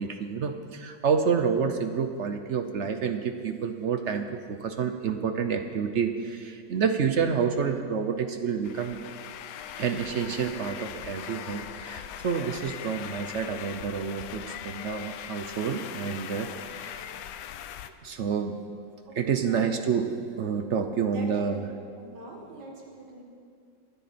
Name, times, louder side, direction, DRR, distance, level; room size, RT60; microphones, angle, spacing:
voice 1, 0.0-9.0 9.7-17.0 18.0-18.6 19.1-21.7, right 6 dB, 60° right, 7 dB, 0.8 m, -29 dB
sound 1, 8.6-17.9, left 10 dB, 80° left, 1.2 m, -40 dB
voice 2, 16.4-16.7 19.1-19.7 21.1-21.6 22.0-23.2, right 1 dB, 80° right, -1 dB, 2.4 m, -44 dB
25.0 x 9.3 x 4.3 m, 2.3 s
omnidirectional pair, 1.8 m